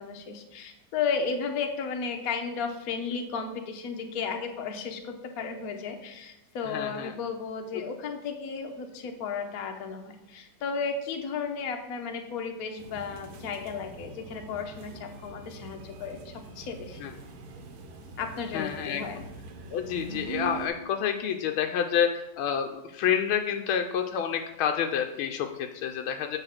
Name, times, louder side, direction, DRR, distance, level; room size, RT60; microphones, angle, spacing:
voice 1, 0.0-17.0 18.2-19.2, left 5 dB, 60° left, 4 dB, 1.1 m, -34 dB
voice 2, 6.6-7.2 17.0-17.1 18.5-19.2 19.7-26.4, left 8 dB, 85° left, 4 dB, 1.4 m, -29 dB
sound 1, 12.8-20.7, right 4 dB, 85° right, 1.7 m, -43 dB
8.0 x 3.7 x 5.7 m, 0.89 s
omnidirectional pair, 2.2 m